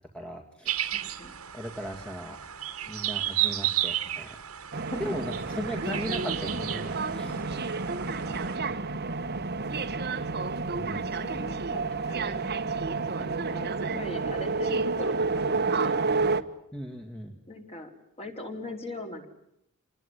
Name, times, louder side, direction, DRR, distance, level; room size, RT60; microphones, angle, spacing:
voice 1, 0.1-0.8 1.5-2.4 2.9-4.4 5.0-7.3 10.7-11.1 16.7-17.3, equal, 5° left, 2 dB, 2.1 m, -37 dB
sound 1, 0.7-8.6, right 12 dB, 80° right, 1.9 m, -33 dB
voice 2, 1.0-1.4 4.9-5.2 7.3-7.7 10.8-12.4 13.2-16.0 17.5-17.9 18.2-19.3, left 1 dB, 30° left, 3 dB, 4.5 m, -40 dB
sound 2, 4.7-16.4, right 4 dB, 50° right, 1.4 m, -30 dB
28.0 x 20.0 x 9.9 m, 0.76 s
head